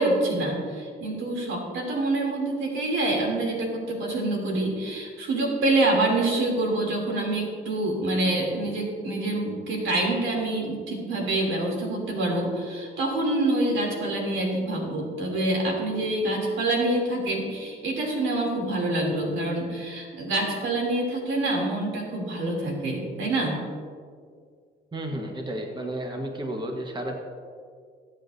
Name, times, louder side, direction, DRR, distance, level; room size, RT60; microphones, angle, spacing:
voice 1, 0.0-23.6, right 2 dB, 80° right, -1 dB, 3.1 m, -26 dB
voice 2, 24.9-27.2, right 1 dB, 25° right, 2 dB, 1.4 m, -32 dB
21.0 x 8.3 x 2.7 m, 2.1 s
cardioid pair, 90°, 20 cm